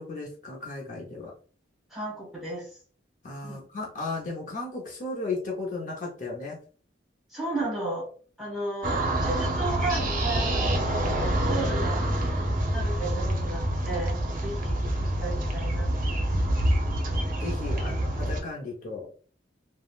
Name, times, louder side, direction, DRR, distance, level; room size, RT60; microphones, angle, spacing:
voice 1, 0.0-1.3 3.2-6.6 16.6-16.7 17.4-19.1, left 3 dB, 45° left, -2 dB, 0.7 m, -35 dB
voice 2, 1.9-2.8 3.4-3.7 7.3-8.1 8.4-12.4 12.7-16.1 17.8-18.0, right 2 dB, ahead, -5 dB, 1.3 m, -34 dB
sound 1, 8.8-18.4, right 1 dB, 45° right, 0.6 m, -27 dB
3.5 x 2.0 x 2.4 m, 0.41 s
head